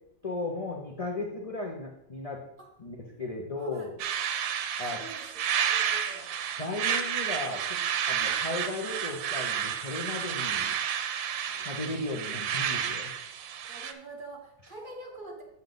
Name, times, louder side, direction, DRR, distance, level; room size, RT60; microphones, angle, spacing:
voice 1, 0.2-2.4 2.8-4.0 4.8-5.0 6.6-7.8 8.1-10.7 11.5-13.1, left 2 dB, 45° left, 0 dB, 0.4 m, -35 dB
voice 2, 3.6-3.9 5.0-5.3 5.7-6.3 8.1-8.3 13.6-15.4, right 2 dB, 30° right, -1 dB, 1.4 m, -45 dB
sound 1, 4.0-13.9, right 9 dB, 85° right, 1.4 m, -31 dB
7.4 x 7.1 x 3.9 m, 0.76 s
omnidirectional pair, 2.0 m